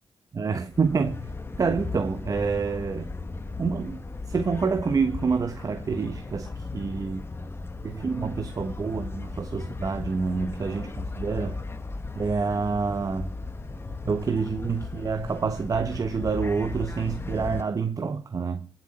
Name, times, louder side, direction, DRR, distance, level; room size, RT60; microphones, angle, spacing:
voice 1, 0.3-1.3 1.6-3.1 3.6-7.2 7.8-11.6 12.1-13.3 14.0-18.7, right 5 dB, 50° right, 1.1 m, -27 dB
sound 1, 0.7-17.6, left 3 dB, 30° left, 1.4 m, -36 dB
22.0 x 7.7 x 4.2 m
supercardioid pair, 50°, 8 cm